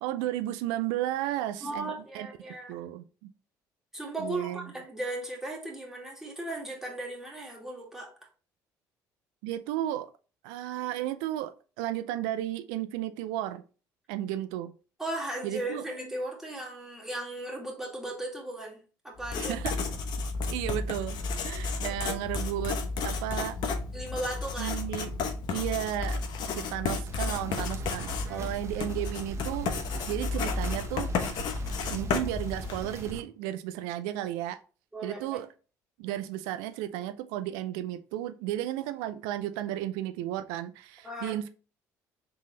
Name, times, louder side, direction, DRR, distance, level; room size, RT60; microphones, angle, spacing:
voice 1, 0.0-3.3 4.2-4.7 9.4-10.1 10.4-13.6 14.1-14.7 15.4-15.8 19.4-19.7 20.5-23.6 24.6-25.1 25.5-26.2 26.5-29.7 30.1-31.1 31.9-34.6 35.0-35.5 36.0-41.5, right 13 dB, 85° right, 0.3 m, -33 dB
voice 2, 1.6-2.8 3.9-8.1 15.0-19.5 23.9-24.7 28.3-28.6 34.9-35.4 41.0-41.3, right 1 dB, 5° right, 2.0 m, -37 dB
Writing, 19.2-33.0, left 4 dB, 65° left, 0.9 m, -32 dB
sound 1, 27.1-33.2, right 3 dB, 35° right, 0.9 m, -41 dB
3.8 x 3.6 x 3.2 m
supercardioid pair, 80°, 8 cm